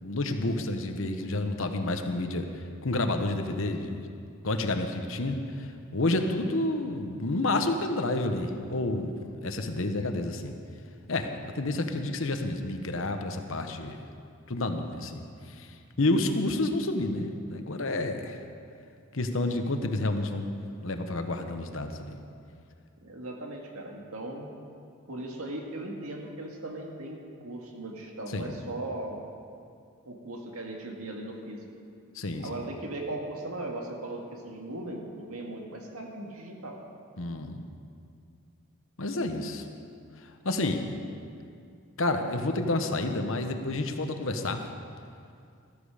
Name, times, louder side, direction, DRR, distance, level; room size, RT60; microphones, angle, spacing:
voice 1, 0.0-4.1 4.4-9.1 9.4-10.6 11.1-14.0 14.5-18.4 19.1-20.5 20.8-22.2 28.3-28.6 32.1-32.6 37.2-37.7 39.0-39.7 40.2-40.9 42.0-44.6, left 2 dB, 65° left, 6 dB, 1.0 m, -30 dB
voice 2, 23.0-24.5 25.1-29.2 30.0-31.7 32.4-36.8, right 1 dB, 80° right, 1 dB, 1.9 m, -38 dB
14.0 x 13.5 x 5.0 m, 2.4 s
head